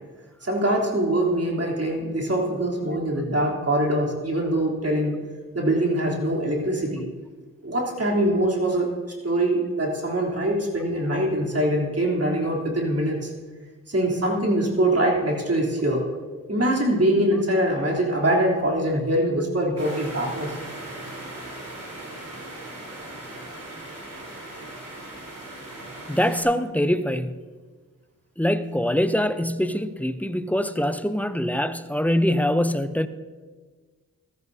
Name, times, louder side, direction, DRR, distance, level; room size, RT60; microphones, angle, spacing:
voice 1, 0.4-5.2 5.5-7.0 7.6-8.9 9.2-13.3 13.9-16.1 16.5-20.6, right 1 dB, 45° right, 3.4 m, -23 dB
sound 1, 19.8-26.4, right 1 dB, 70° right, 3.9 m, -38 dB
voice 2, 26.1-27.4 28.4-33.1, equal, 5° left, 0.6 m, -23 dB
15.0 x 13.5 x 2.8 m
cardioid pair, 45°, 34 cm